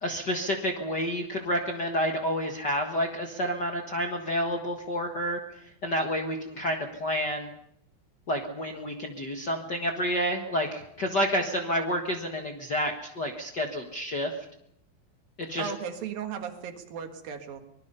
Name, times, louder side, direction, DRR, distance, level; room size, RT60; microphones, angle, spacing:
voice 1, 0.0-7.5 8.3-14.3 15.4-15.7, equal, 45° left, 3 dB, 1.4 m, -29 dB
voice 2, 15.6-17.6, right 7 dB, 75° right, 6 dB, 3.5 m, -36 dB
24.5 x 20.5 x 5.6 m, 0.75 s
omnidirectional pair, 4.1 m